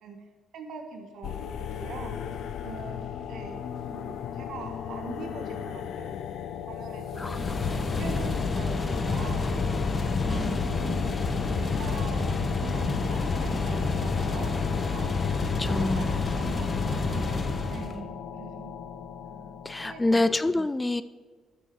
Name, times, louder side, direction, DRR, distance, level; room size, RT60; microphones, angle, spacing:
voice 1, 0.5-2.2 2.6-6.1 6.7-9.4 10.3-11.2 11.6-15.1 15.7-17.4 17.7-18.7 19.8-20.2, right 5 dB, 75° right, 4 dB, 1.6 m, -42 dB
sound 1, 1.2-20.4, left 8 dB, 75° left, 0.6 m, -37 dB
sound 2, 7.1-18.0, left 3 dB, 30° left, 1.0 m, -28 dB
voice 2, 7.2-7.6 10.1-10.7 15.6-16.1 19.3-21.0, left 2 dB, 15° left, 15 dB, 0.4 m, -28 dB
12.5 x 6.7 x 4.9 m, 1.5 s
cardioid pair, 90°, 0 cm